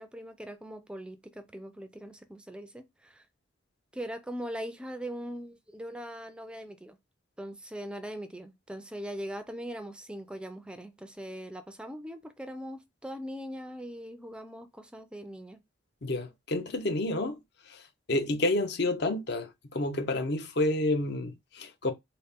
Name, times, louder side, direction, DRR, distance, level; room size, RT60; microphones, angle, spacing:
voice 1, 0.0-3.2 3.9-7.0 7.4-15.6, equal, 5° right, 0.4 m, -41 dB
voice 2, 16.0-17.4 17.7-17.8 18.1-21.9, left 2 dB, 55° left, 0.8 m, -29 dB
4.2 x 2.1 x 3.5 m
head